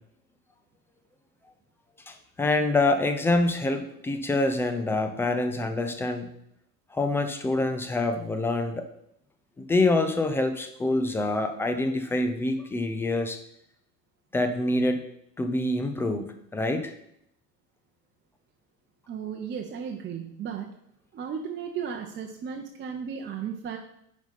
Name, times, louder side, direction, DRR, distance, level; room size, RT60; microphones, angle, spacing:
voice 1, 2.1-6.3 6.9-8.9 9.6-13.4 14.3-15.0 15.4-16.9, left 2 dB, 5° left, 7 dB, 0.3 m, -26 dB
voice 2, 19.1-20.7 21.1-23.8, right 7 dB, 25° right, 1 dB, 0.8 m, -35 dB
10.0 x 4.1 x 5.5 m, 0.74 s
figure-of-eight pair, 80°, 50 cm